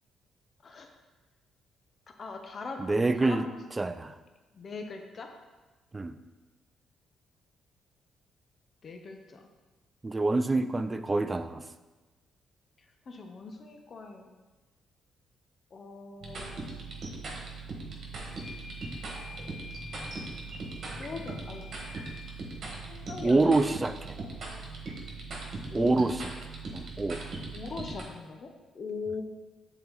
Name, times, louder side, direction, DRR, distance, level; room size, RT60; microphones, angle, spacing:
voice 1, 2.2-3.6 4.5-5.3 8.8-9.4 13.1-14.3 15.7-16.7 21.0-21.7 22.9-23.5 25.7-25.9 27.5-28.5 28.7-29.2, left 4 dB, 45° left, 4 dB, 0.7 m, -40 dB
voice 2, 2.8-3.5 3.8-4.2 5.9-6.2 10.0-11.6 23.2-24.2 25.7-26.2 26.7-27.2, right 2 dB, 20° right, 11 dB, 0.3 m, -26 dB
sound 1, 16.2-28.0, right 3 dB, 55° right, 1.5 m, -40 dB
sound 2, 18.3-22.6, left 4 dB, 70° left, 1.3 m, -49 dB
6.8 x 4.0 x 4.0 m, 1.2 s
cardioid pair, 90°, 0 cm